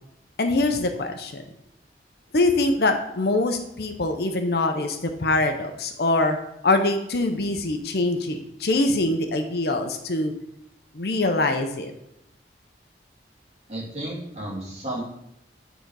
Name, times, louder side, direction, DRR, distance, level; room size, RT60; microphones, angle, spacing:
voice 1, 0.4-1.4 2.3-6.4 6.6-10.3 10.9-11.9, left 2 dB, 60° left, 6 dB, 0.7 m, -23 dB
voice 2, 13.7-15.0, right 1 dB, 35° right, -5 dB, 2.4 m, -32 dB
8.8 x 3.9 x 4.7 m, 0.80 s
head